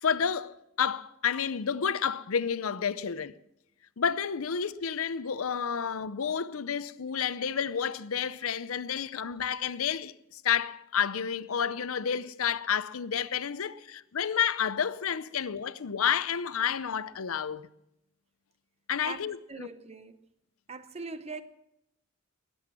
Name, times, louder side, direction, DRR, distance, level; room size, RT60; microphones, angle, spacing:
voice 1, 0.0-3.3 4.0-17.7 18.9-19.7, left 7 dB, 80° left, 0.6 m, -30 dB
voice 2, 19.5-20.2 20.7-21.4, right 3 dB, 30° right, 0.8 m, -41 dB
21.5 x 7.9 x 7.4 m
head